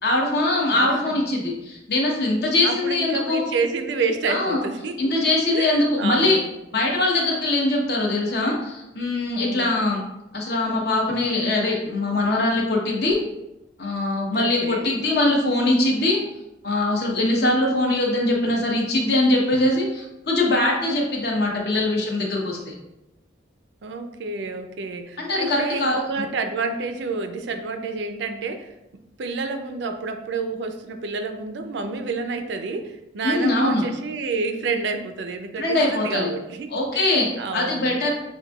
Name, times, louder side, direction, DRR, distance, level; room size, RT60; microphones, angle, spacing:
voice 1, 0.0-3.4 4.3-4.6 5.0-6.4 6.7-10.0 10.3-13.2 13.8-16.2 16.6-22.7 25.2-26.0 33.2-33.9 35.6-36.3 36.7-37.3 37.5-38.1, left 2 dB, 55° left, -1 dB, 0.8 m, -22 dB
voice 2, 0.7-1.2 2.6-5.1 5.5-6.5 9.4-9.7 14.3-14.9 23.8-28.7 29.2-38.1, right 4 dB, 70° right, 6 dB, 0.4 m, -29 dB
6.2 x 2.6 x 2.3 m, 0.93 s
head